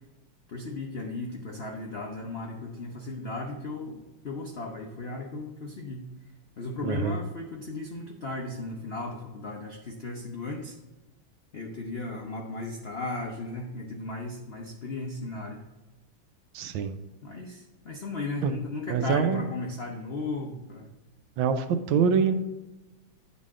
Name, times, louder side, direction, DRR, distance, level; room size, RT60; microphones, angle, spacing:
voice 1, 0.5-6.1 6.6-10.8 11.5-15.6 17.2-20.9, left 2 dB, 85° left, 0 dB, 0.5 m, -36 dB
voice 2, 6.8-7.2 16.5-17.0 18.4-18.5 18.9-19.4 21.4-22.3, right 6 dB, 80° right, 9 dB, 1.4 m, -25 dB
10.0 x 4.1 x 3.6 m, 1.1 s
omnidirectional pair, 2.3 m